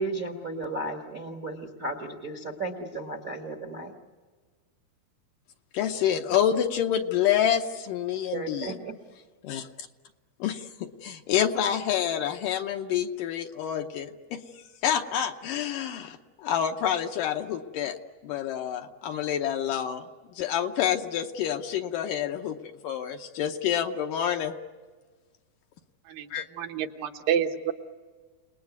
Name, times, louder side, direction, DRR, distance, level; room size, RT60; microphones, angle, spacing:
voice 1, 0.0-3.9 8.3-8.9, right 2 dB, 45° right, 5 dB, 1.1 m, -34 dB
voice 2, 5.7-8.7 9.4-9.7 10.4-14.4 14.8-16.2 16.4-18.0 18.2-20.1 20.4-22.6 22.8-24.5 26.3-26.5, left 9 dB, 70° left, 5 dB, 2.3 m, -28 dB
voice 3, 26.6-27.7, right 9 dB, 70° right, 4 dB, 2.7 m, -28 dB
29.5 x 19.5 x 9.3 m, 1.5 s
omnidirectional pair, 4.4 m